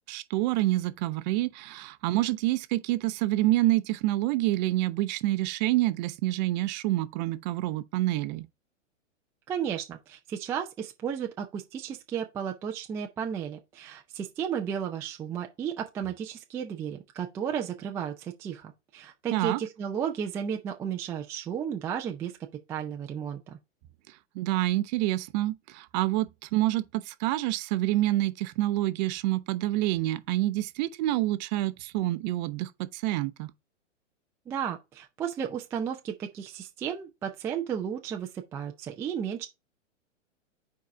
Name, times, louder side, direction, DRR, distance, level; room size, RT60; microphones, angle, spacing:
voice 1, 0.1-8.5 19.3-19.6 24.1-33.5, right 16 dB, 35° right, 0.7 m, -27 dB
voice 2, 9.5-22.3 22.7-23.6 34.5-39.5, right 8 dB, 5° right, 0.3 m, -33 dB
6.7 x 4.7 x 3.4 m
hypercardioid pair, 115°, 38 cm